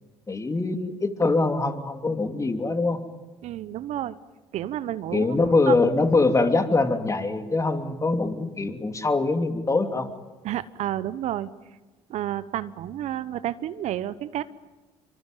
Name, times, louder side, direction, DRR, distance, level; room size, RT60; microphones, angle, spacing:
voice 1, 0.3-3.0 5.1-10.1, left 3 dB, 25° left, 6 dB, 3.1 m, -23 dB
voice 2, 3.4-4.2 4.5-5.4 5.7-5.8 10.4-11.5 12.1-14.4, right 12 dB, 60° right, 16 dB, 1.0 m, -30 dB
25.5 x 24.5 x 9.1 m, 1.2 s
hypercardioid pair, 65°, 13 cm